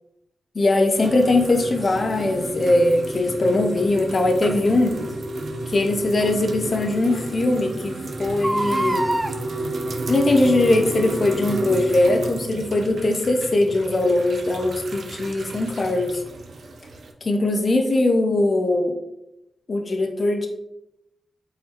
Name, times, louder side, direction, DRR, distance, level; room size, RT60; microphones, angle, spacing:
voice 1, 0.5-5.0 5.7-9.0 10.1-16.2 17.2-19.0 19.7-20.5, left 2 dB, 55° left, 3 dB, 0.5 m, -20 dB
sound 1, 1.0-17.1, right 2 dB, 70° right, 0.5 m, -32 dB
Crying sobbing, 1.8-2.0 4.4-4.6 6.2-6.3 6.8-6.9 7.1-7.2 8.3-9.3 10.3-10.6 11.2-11.3, right 1 dB, 20° right, 0.4 m, -26 dB
4.1 x 3.9 x 2.8 m, 0.87 s
supercardioid pair, 45°, 0 cm